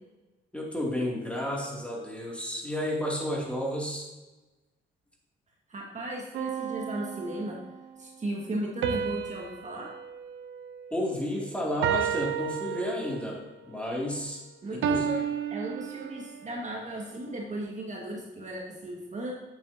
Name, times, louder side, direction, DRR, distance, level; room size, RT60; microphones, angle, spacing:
voice 1, 0.5-4.1 10.9-13.4 13.7-14.4 14.7-15.1, left 1 dB, 5° left, -3 dB, 2.6 m, -31 dB
voice 2, 5.7-7.6 8.0-9.9 14.6-15.2 15.5-19.3, right 1 dB, 35° right, -2 dB, 1.8 m, -36 dB
sound 1, 6.3-7.8 8.8-11.3 11.8-13.4 14.8-16.5, right 8 dB, 75° right, 0.7 m, -32 dB
9.4 x 7.9 x 2.8 m, 1.1 s
cardioid pair, 90°, 20 cm